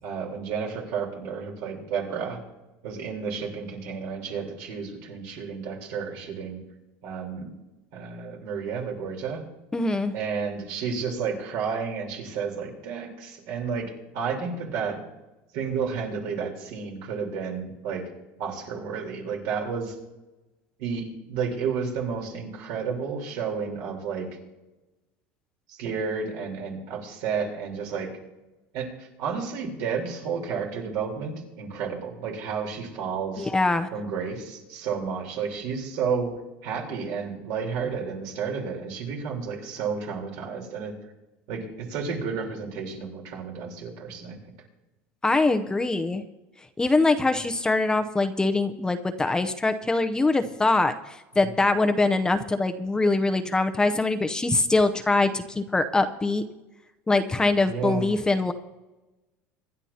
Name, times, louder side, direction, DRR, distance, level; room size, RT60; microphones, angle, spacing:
voice 1, 0.0-2.4 2.8-6.6 7.0-7.5 7.9-9.4 10.1-15.0 15.5-18.1 18.4-19.9 20.8-24.3 25.7-28.1 28.7-33.5 33.9-36.3 36.6-40.9 41.5-44.4 47.2-47.4 51.4-51.6 57.7-58.1, right 6 dB, 70° right, 0 dB, 3.9 m, -31 dB
voice 2, 9.7-10.1 33.4-33.9 45.2-46.2 46.8-56.4 57.1-58.5, left 2 dB, 10° left, 8 dB, 0.7 m, -23 dB
25.0 x 10.5 x 2.9 m, 1.0 s
supercardioid pair, 125°, 6 cm